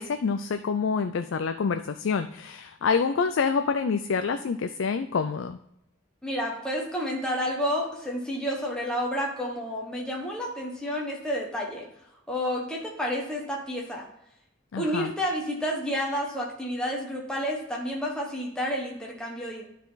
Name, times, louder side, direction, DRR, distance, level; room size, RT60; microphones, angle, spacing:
voice 1, 0.0-5.6 14.7-15.1, left 5 dB, 70° left, 9 dB, 0.4 m, -27 dB
voice 2, 6.2-11.9 12.3-14.1 14.8-19.7, equal, 5° left, -3 dB, 1.2 m, -30 dB
12.0 x 4.1 x 4.0 m, 0.80 s
head